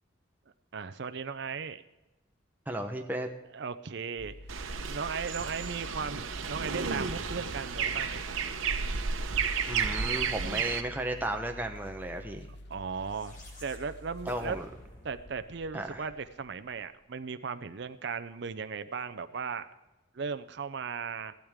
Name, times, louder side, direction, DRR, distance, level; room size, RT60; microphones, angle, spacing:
voice 1, 0.7-1.8 3.5-4.3 4.9-8.4 12.7-13.4 13.6-14.6 15.0-19.7 20.1-21.3, right 5 dB, 55° right, 10 dB, 0.5 m, -37 dB
voice 2, 2.7-3.3 9.7-12.5 14.3-14.7 15.7-16.0, right 1 dB, 10° right, 3 dB, 0.9 m, -34 dB
sound 1, 4.2-14.6, left 1 dB, 55° left, 0.8 m, -48 dB
sound 2, 4.5-10.8, right 6 dB, 85° right, 0.9 m, -32 dB
sound 3, 12.7-17.1, left 1 dB, 40° left, 1.9 m, -54 dB
15.5 x 12.0 x 3.6 m, 1.0 s
head